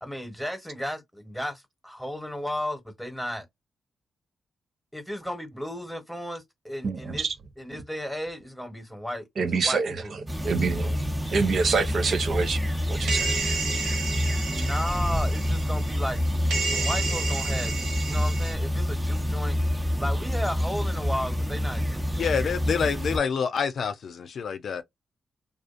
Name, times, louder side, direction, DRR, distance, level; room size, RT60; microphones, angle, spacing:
voice 1, 0.0-3.4 4.9-7.2 7.6-9.3 9.5-10.1 10.8-11.0 14.3-16.2 16.6-19.6 20.0-22.3, equal, ahead, 1.1 m, -34 dB
voice 2, 6.8-7.3 9.4-9.9 10.4-10.9 11.3-12.6 12.9-13.3, right 4 dB, 65° right, 0.5 m, -26 dB
sound 1, 10.3-23.2, equal, 15° right, 0.7 m, -27 dB
sound 2, 13.1-16.2 16.5-18.5, right 4 dB, 90° right, 0.8 m, -31 dB
voice 3, 22.2-24.8, left 6 dB, 70° left, 0.4 m, -27 dB
2.4 x 2.4 x 2.4 m
supercardioid pair, 50°, 0 cm